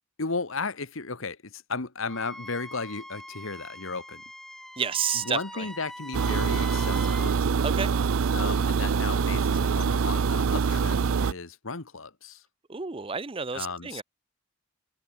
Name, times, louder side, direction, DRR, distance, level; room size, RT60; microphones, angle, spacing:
voice 1, 0.2-4.2 5.2-7.4 8.3-12.4 13.5-14.0, left 4 dB, 65° left, 1.5 m, -35 dB
Wind instrument woodwind instrument, 2.1-7.4, left 1 dB, ahead, 2.4 m, -43 dB
voice 2, 4.8-5.7 7.6-7.9 12.7-14.0, right 6 dB, 25° right, 0.6 m, -30 dB
sound 1, 6.1-11.3, right 5 dB, 70° right, 0.5 m, -25 dB
head